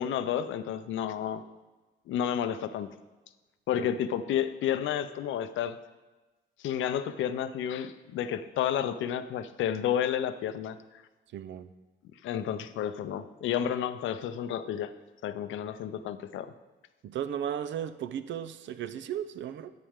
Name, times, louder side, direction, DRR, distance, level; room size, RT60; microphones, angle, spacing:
voice 1, 0.0-1.4 2.1-2.9 3.7-5.8 6.6-10.8 12.2-14.9 15.2-16.5, left 9 dB, 75° left, 11 dB, 0.6 m, -31 dB
voice 2, 11.3-11.7 17.0-19.7, right 9 dB, 70° right, 13 dB, 0.6 m, -35 dB
10.5 x 8.4 x 3.6 m, 1.2 s
cardioid pair, 90°, 20 cm